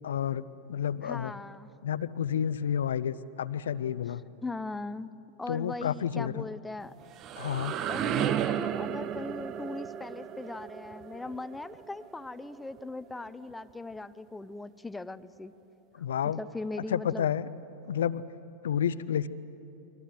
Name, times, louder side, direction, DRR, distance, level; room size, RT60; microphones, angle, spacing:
voice 1, 0.0-0.4 0.7-1.3 1.8-4.2 5.5-6.4 7.4-7.8 16.0-16.4 16.9-17.5 17.9-18.2 18.6-19.3, left 9 dB, 65° left, 16 dB, 0.7 m, -30 dB
voice 2, 1.0-1.7 4.0-4.2 4.4-5.1 5.4-6.9 7.9-15.6 16.4-17.3, left 2 dB, 10° left, 14 dB, 0.7 m, -39 dB
sound 1, 6.8-12.6, right 9 dB, 35° right, 0.8 m, -34 dB
29.5 x 23.5 x 7.7 m, 3.0 s
figure-of-eight pair, 90°, 0 cm